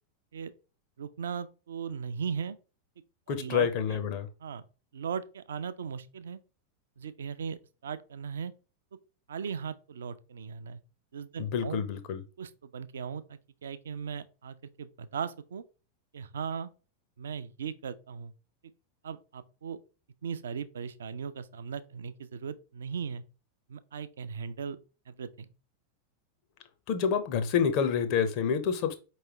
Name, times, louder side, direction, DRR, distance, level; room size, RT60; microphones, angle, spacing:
voice 1, 1.0-2.6 3.3-4.0 4.4-4.6 4.9-6.4 7.0-8.5 9.3-10.8 11.1-11.8 12.4-15.6 16.1-16.7 17.2-18.3 19.0-19.8 20.2-23.2 23.7-24.8 25.1-25.5, right 6 dB, 65° right, 0.4 m, -38 dB
voice 2, 3.3-4.3 11.4-12.2 26.9-29.0, left 7 dB, 45° left, 0.6 m, -28 dB
4.8 x 3.1 x 2.9 m
figure-of-eight pair, 90°, 0 cm